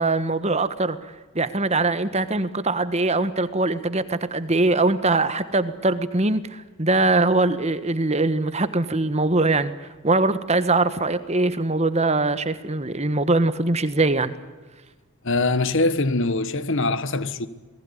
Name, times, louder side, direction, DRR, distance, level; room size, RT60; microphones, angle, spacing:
voice 1, 0.0-9.7 10.0-14.3, right 2 dB, 30° right, 1.4 m, -22 dB
voice 2, 15.2-17.5, left 2 dB, 55° left, 1.4 m, -23 dB
28.5 x 19.5 x 10.0 m
head